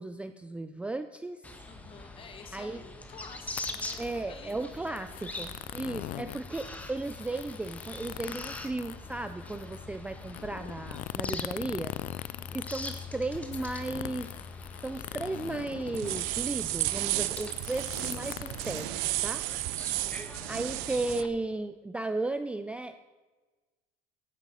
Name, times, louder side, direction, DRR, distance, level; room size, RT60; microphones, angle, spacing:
voice 1, 0.0-1.4 2.5-2.8 4.0-12.0 12.5-14.3 14.8-19.4 20.5-23.0, right 2 dB, 5° right, 10 dB, 0.5 m, -35 dB
sound 1, 1.4-21.3, left 2 dB, 10° left, 1.4 m, -43 dB
voice 2, 1.7-5.6 12.3-12.6 18.3-18.6 19.8-20.2, left 6 dB, 35° left, 8 dB, 1.7 m, -52 dB
sound 2, 3.5-19.6, left 17 dB, 55° left, 0.4 m, -42 dB
sound 3, 16.0-21.2, right 20 dB, 70° right, 0.6 m, -33 dB
16.0 x 10.5 x 5.7 m, 1.3 s
cardioid pair, 135°, 17 cm